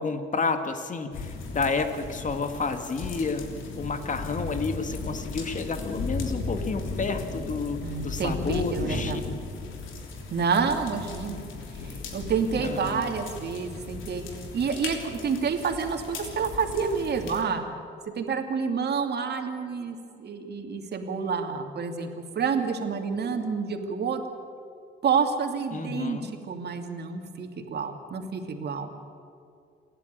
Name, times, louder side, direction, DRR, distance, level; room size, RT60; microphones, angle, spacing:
voice 1, 0.0-3.4 3.7-9.2 12.6-13.0 25.7-26.3, left 4 dB, 40° left, 8 dB, 2.1 m, -30 dB
sound 1, 1.1-17.4, left 3 dB, 85° left, 3.4 m, -36 dB
voice 2, 7.8-9.2 10.3-11.4 11.7-14.2 14.5-17.6 18.2-24.2 25.0-29.1, right 5 dB, 55° right, 5 dB, 2.6 m, -29 dB
28.5 x 11.0 x 9.3 m, 2.4 s
cardioid pair, 90°, 20 cm